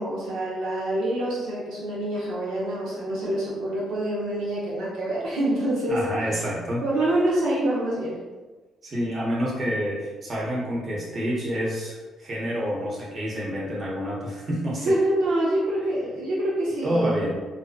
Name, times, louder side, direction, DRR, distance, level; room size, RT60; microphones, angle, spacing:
voice 1, 0.0-6.4 6.8-8.2 14.8-17.2, right 1 dB, 85° right, -6 dB, 0.6 m, -26 dB
voice 2, 5.9-6.8 8.8-14.9 16.8-17.4, equal, 45° right, -4 dB, 0.9 m, -28 dB
2.5 x 2.2 x 2.4 m, 1.3 s
cardioid pair, 90°, 0 cm